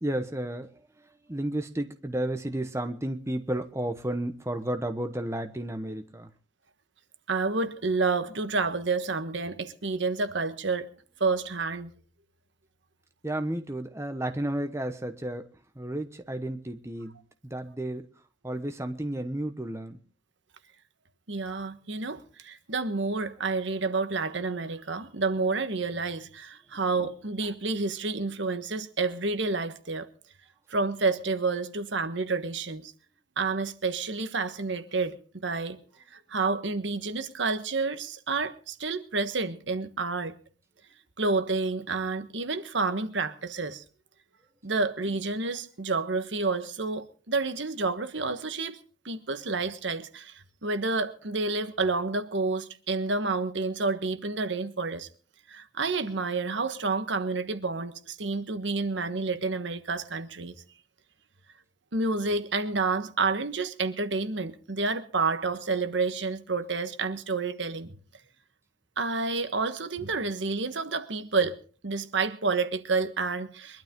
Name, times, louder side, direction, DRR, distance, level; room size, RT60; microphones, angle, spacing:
voice 1, 0.0-0.7 1.3-6.3 13.2-15.5 15.8-17.2 17.4-18.1 18.4-20.0, right 1 dB, 15° right, 1.1 m, -32 dB
voice 2, 7.3-10.9 11.2-11.9 21.3-30.1 30.7-32.9 33.4-35.2 35.4-35.8 36.1-40.4 41.2-43.8 44.6-48.8 49.0-55.1 55.5-60.5 61.9-67.9 69.0-71.6 71.8-73.8, right 3 dB, 70° right, 1.3 m, -29 dB
23.0 x 12.0 x 3.7 m
head